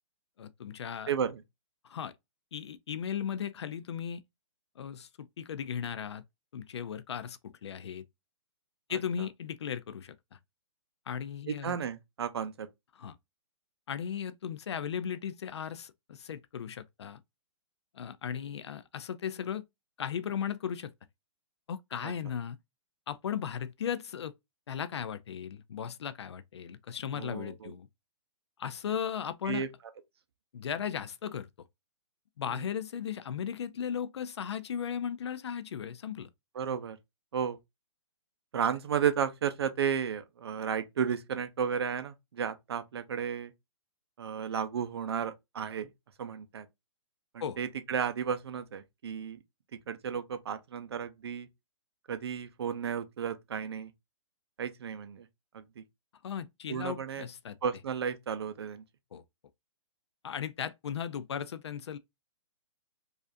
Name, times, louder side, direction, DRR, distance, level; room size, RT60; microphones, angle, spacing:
voice 1, 0.4-1.1 1.8-2.1 2.5-4.2 4.8-6.2 6.5-8.0 8.9-10.2 11.1-11.8 12.9-13.2 13.9-17.2 17.9-19.6 20.0-20.9 21.7-22.6 23.1-24.3 24.7-27.9 28.6-29.7 30.5-31.5 32.4-36.3 47.4-47.6 56.2-57.6 59.1-59.2 60.2-62.0, left 8 dB, 60° left, 0.4 m, -36 dB
voice 2, 1.1-1.4 11.5-12.7 22.0-22.1 27.1-27.7 29.5-29.7 36.6-37.0 37.3-37.6 38.5-43.5 44.2-45.9 46.2-46.7 47.3-49.4 49.9-51.5 52.1-53.9 54.6-55.3 55.5-55.8 56.7-57.3 57.6-58.8, right 7 dB, 55° right, 0.5 m, -33 dB
4.9 x 2.5 x 2.5 m
hypercardioid pair, 175°, 16 cm